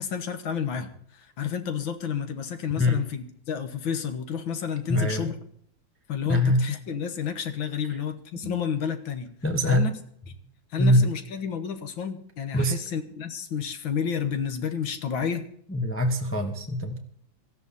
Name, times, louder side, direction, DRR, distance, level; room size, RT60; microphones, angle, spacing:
voice 1, 0.0-5.4 6.1-9.3 9.6-9.9 10.7-15.4, left 7 dB, 90° left, 8 dB, 2.1 m, -30 dB
voice 2, 4.9-5.3 6.3-6.6 8.4-8.5 9.4-9.9 10.8-11.0 12.5-12.7 15.7-17.0, left 1 dB, 10° left, 4 dB, 0.9 m, -23 dB
17.5 x 14.0 x 4.2 m, 0.64 s
omnidirectional pair, 2.1 m